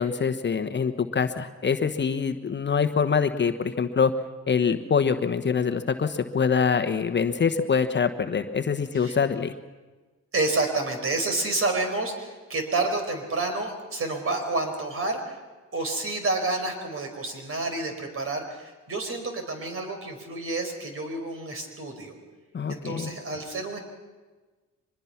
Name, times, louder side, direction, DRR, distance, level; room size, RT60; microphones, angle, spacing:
voice 1, 0.0-4.1 4.5-9.5 22.5-23.1, left 6 dB, 35° left, 8 dB, 1.2 m, -24 dB
voice 2, 10.3-15.4 15.7-22.1 22.7-23.8, right 2 dB, 45° right, 5 dB, 4.9 m, -29 dB
24.0 x 20.5 x 5.9 m, 1.3 s
cardioid pair, 90°, 30 cm